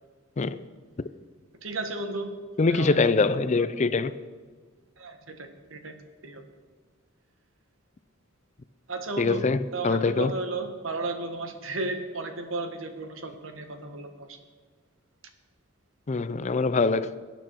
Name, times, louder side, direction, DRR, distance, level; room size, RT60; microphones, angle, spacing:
voice 1, 1.6-3.7 5.0-5.9 6.2-6.4 8.9-9.4 9.7-14.4, right 2 dB, 80° right, 1.5 m, -34 dB
voice 2, 2.6-4.1 9.2-9.6 9.8-10.3 16.1-17.1, left 4 dB, 35° left, 0.4 m, -23 dB
21.5 x 8.9 x 4.6 m
head